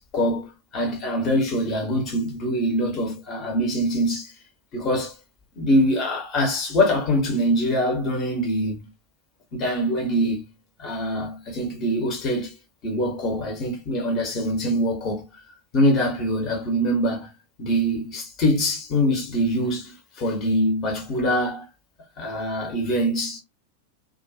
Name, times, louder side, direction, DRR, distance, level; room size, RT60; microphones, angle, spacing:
voice 1, 0.0-4.3 4.7-5.2 5.6-8.8 9.5-10.4 10.8-12.6 12.8-15.4 15.7-17.3 17.6-21.7 22.2-23.4, equal, 35° left, 1.1 m, -24 dB
2.5 x 2.4 x 2.8 m
figure-of-eight pair, 90°, 0 cm